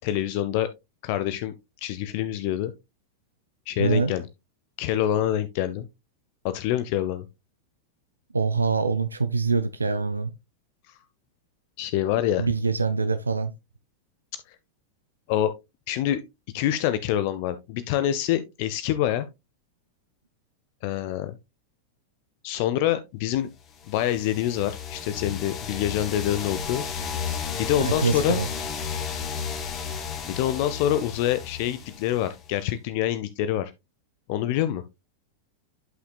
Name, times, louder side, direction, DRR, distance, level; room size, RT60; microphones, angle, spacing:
voice 1, 0.0-0.7 1.0-2.7 3.7-4.3 4.8-5.9 6.4-7.2 10.9-11.0 11.8-12.5 14.3-14.6 15.3-15.5 15.9-16.2 16.5-19.3 20.8-21.4 22.4-23.5 23.9-26.8 27.5-28.4 30.3-33.7 34.3-34.8, left 12 dB, 45° left, 0.5 m, -26 dB
voice 2, 3.8-4.1 8.3-10.3 12.4-13.5 27.8-28.5, right 4 dB, 80° right, 0.5 m, -24 dB
sound 1, 23.8-32.5, left 6 dB, 30° left, 1.6 m, -33 dB
11.0 x 5.7 x 2.2 m
figure-of-eight pair, 90°, 0 cm